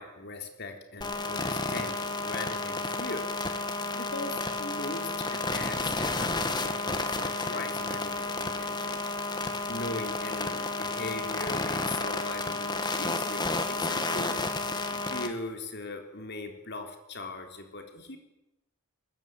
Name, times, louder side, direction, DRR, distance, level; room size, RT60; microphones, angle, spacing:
voice 1, 0.0-3.3 3.7-9.0 9.4-14.4 14.9-18.2, left 2 dB, 50° left, 5 dB, 4.0 m, -39 dB
sound 1, 1.0-15.3, left 3 dB, 20° left, 2.3 m, -31 dB
23.0 x 21.5 x 9.3 m, 0.90 s
head